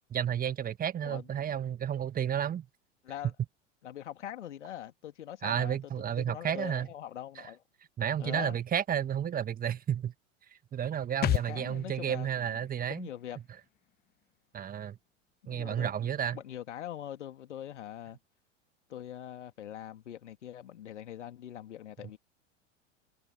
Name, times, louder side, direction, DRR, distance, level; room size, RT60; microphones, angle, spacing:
voice 1, 0.1-2.7 5.4-6.9 7.4-7.5 8.0-10.1 10.7-13.1 14.5-15.0 15.5-16.4, right 9 dB, 20° right, 2.0 m, -32 dB
voice 2, 1.0-1.4 3.0-3.3 3.8-7.6 8.2-8.6 11.3-12.6 12.9-13.4 15.4-18.2 18.9-22.2, left 11 dB, 65° left, 3.0 m, -43 dB
sound 1, 11.2-14.7 15.0-15.1, left 13 dB, 25° left, 0.9 m, -36 dB
figure-of-eight pair, 90°, 38 cm